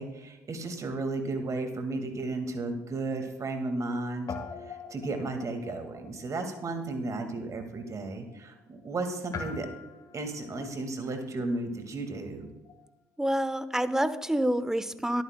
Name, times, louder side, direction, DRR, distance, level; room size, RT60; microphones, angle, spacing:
voice 1, 0.0-4.3 4.7-9.7 10.1-12.5, right 2 dB, 40° right, 6 dB, 1.9 m, -34 dB
Guitar, 2.2-4.0 4.2-12.9, left 5 dB, 40° left, 1.4 m, -46 dB
voice 2, 13.2-15.2, right 1 dB, 5° right, 14 dB, 0.7 m, -27 dB
22.5 x 9.2 x 2.2 m, 1.0 s
hypercardioid pair, 55°, 9 cm